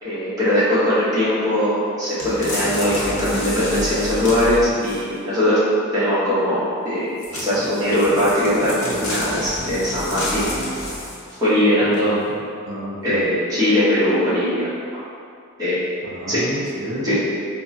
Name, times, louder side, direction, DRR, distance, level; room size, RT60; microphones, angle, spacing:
voice 1, 0.0-5.6 5.9-10.5 11.4-12.1 13.0-14.6 15.6-15.8 16.3-16.4 17.0-17.2, left 1 dB, 15° right, -12 dB, 0.7 m, -20 dB
sound 1, 2.2-5.2 7.2-11.4 11.9-12.0, left 1 dB, 65° left, 0.7 m, -29 dB
voice 2, 11.9-12.4 12.6-13.3 16.0-17.2, equal, 65° right, -4 dB, 0.5 m, -30 dB
3.6 x 2.0 x 2.5 m, 2.3 s
head